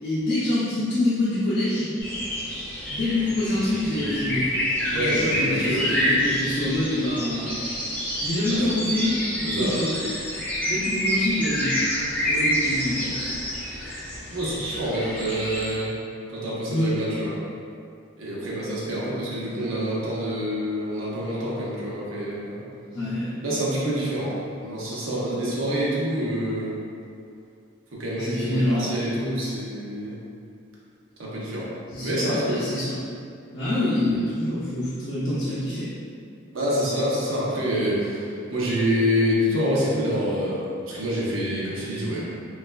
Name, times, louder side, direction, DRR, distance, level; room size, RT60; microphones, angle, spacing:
voice 1, 0.0-1.9 2.9-4.5 4.9-7.5 8.2-9.9 10.7-11.8 12.2-13.3 16.7-16.9 22.9-23.4 28.1-28.9 31.9-33.0 33.5-35.9, left 1 dB, 55° left, -11 dB, 0.5 m, -26 dB
sound 1, 2.0-15.7, equal, 10° left, 0.5 m, -28 dB
voice 2, 4.9-5.8 8.5-8.8 9.4-9.8 14.3-15.9 16.3-17.3 18.2-22.6 23.4-26.8 27.9-30.2 31.2-31.7 32.0-32.6 36.5-42.2, equal, 80° right, -6 dB, 0.7 m, -27 dB
3.1 x 2.3 x 2.2 m, 2.5 s
head